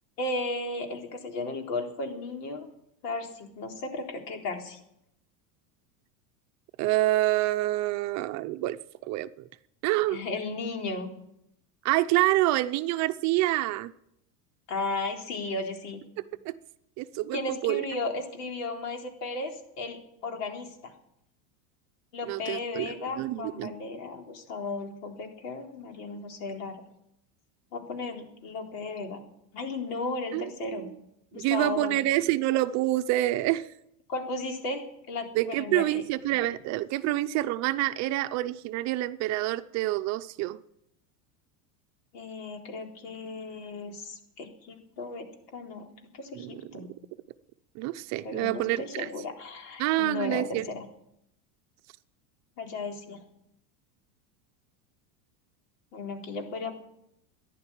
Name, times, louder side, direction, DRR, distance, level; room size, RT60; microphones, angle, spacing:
voice 1, 0.2-2.7 3.0-4.8 10.1-11.1 14.7-16.0 17.3-20.9 22.1-26.8 27.7-29.2 29.5-30.9 31.3-32.2 34.1-36.0 42.1-45.8 46.1-46.9 48.2-50.9 52.6-53.2 55.9-56.7, left 3 dB, 85° left, 4.1 m, -35 dB
voice 2, 6.8-9.3 9.8-10.2 11.8-13.9 16.4-16.5 17.0-17.8 22.2-23.7 30.3-30.9 31.3-33.7 35.3-40.6 46.3-46.8 47.8-49.1 49.8-50.6, right 16 dB, 40° right, 0.6 m, -27 dB
15.0 x 11.0 x 8.9 m
supercardioid pair, 145°, 46 cm